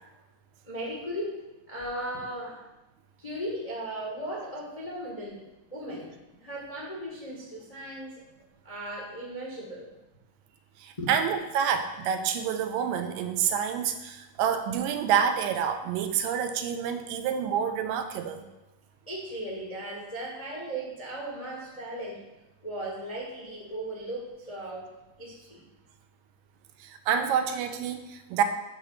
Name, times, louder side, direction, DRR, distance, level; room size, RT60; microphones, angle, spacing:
voice 1, 0.6-1.4 1.7-2.6 3.2-5.4 5.7-8.2 8.6-9.9 11.0-11.1 19.1-22.2 22.6-24.9 25.2-25.6, right 1 dB, 55° left, -4 dB, 0.4 m, -37 dB
voice 2, 10.8-18.4 26.8-28.4, right 8 dB, 85° right, 7 dB, 2.3 m, -28 dB
7.9 x 3.9 x 6.5 m, 1.0 s
omnidirectional pair, 3.9 m